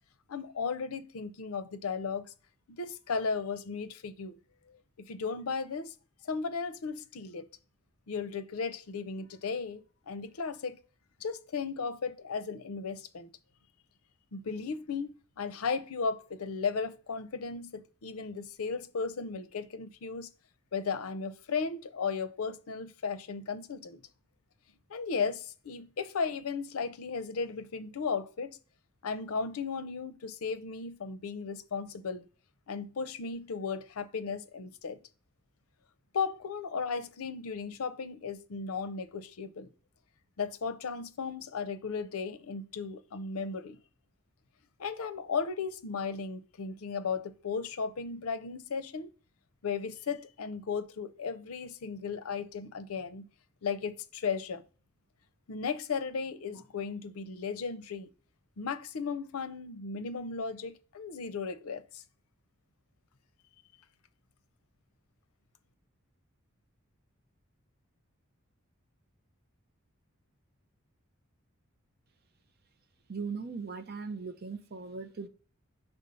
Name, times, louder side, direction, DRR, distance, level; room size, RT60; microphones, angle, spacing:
voice 1, 0.3-2.3 2.7-4.3 4.7-5.9 6.2-7.4 8.1-10.8 11.2-13.3 14.3-15.1 15.4-20.3 20.7-24.0 24.9-28.6 29.0-32.2 32.7-35.0 36.1-39.7 40.4-43.8 44.8-49.1 49.6-53.3 53.6-54.6 55.5-58.1 58.6-62.0, left 5 dB, 85° left, 0.6 m, -35 dB
voice 2, 73.1-75.3, right 5 dB, 45° right, 0.6 m, -39 dB
5.4 x 3.5 x 5.5 m
head